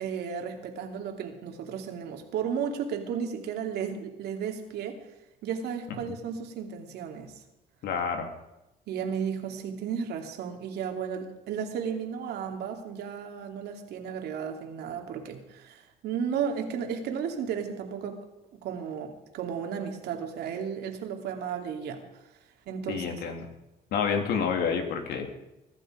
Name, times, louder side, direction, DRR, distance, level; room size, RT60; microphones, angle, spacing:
voice 1, 0.0-5.0 5.4-7.3 8.9-18.2 18.6-22.0 22.7-23.2, right 7 dB, 75° right, 4 dB, 2.8 m, -34 dB
voice 2, 7.8-8.3 22.9-23.4 23.9-25.3, left 6 dB, 70° left, 5 dB, 3.0 m, -28 dB
22.0 x 11.5 x 5.1 m, 0.96 s
cardioid pair, 110°, 17 cm